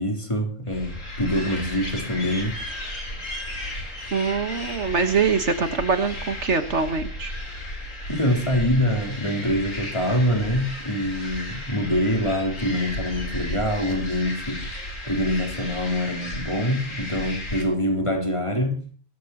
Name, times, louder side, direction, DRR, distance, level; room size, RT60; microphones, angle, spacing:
voice 1, 0.0-2.6 8.1-14.6 15.1-18.8, equal, 25° left, 2 dB, 3.6 m, -25 dB
sound 1, 0.7-17.6, left 1 dB, 75° left, 4.3 m, -34 dB
voice 2, 4.1-7.3, right 5 dB, 60° right, 8 dB, 1.6 m, -23 dB
23.0 x 14.5 x 3.0 m, 0.38 s
omnidirectional pair, 1.4 m